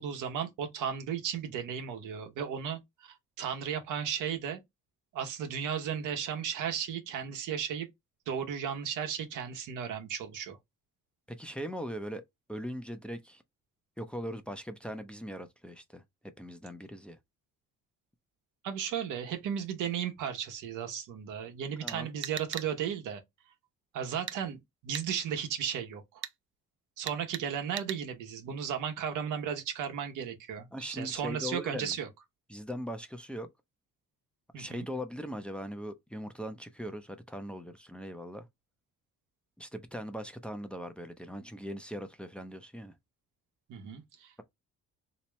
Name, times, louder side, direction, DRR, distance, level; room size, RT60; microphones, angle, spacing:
voice 1, 0.0-4.6 5.1-7.9 8.3-10.6 18.6-23.2 23.9-24.6 24.8-26.2 27.0-32.1 34.5-34.9 43.7-44.4, right 8 dB, 90° right, 1.1 m, -35 dB
voice 2, 11.3-12.2 12.5-13.4 14.0-16.0 16.4-17.2 21.8-22.1 30.7-32.0 32.5-33.5 34.5-38.5 39.6-42.9, equal, 5° left, 0.6 m, -40 dB
sound 1, 21.9-22.7 24.3-24.4 24.9-25.1 26.2-26.3 27.1-27.5 27.8-28.0, right 9 dB, 40° right, 0.5 m, -38 dB
3.3 x 2.9 x 3.0 m
cardioid pair, 90°, 30 cm